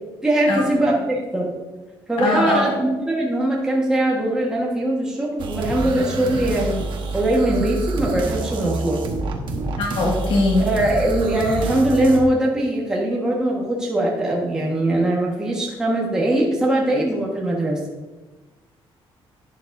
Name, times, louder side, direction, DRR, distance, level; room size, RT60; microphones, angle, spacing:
voice 1, 0.2-1.5 2.1-6.9 7.1-9.0 10.6-17.8, right 1 dB, 5° right, -3 dB, 1.4 m, -21 dB
voice 2, 2.2-2.7 9.8-10.7, left 2 dB, 65° left, -1 dB, 1.9 m, -20 dB
sound 1, 5.4-12.2, right 3 dB, 55° right, 1.2 m, -27 dB
11.5 x 9.6 x 2.6 m, 1.2 s
cardioid pair, 180°, 10 cm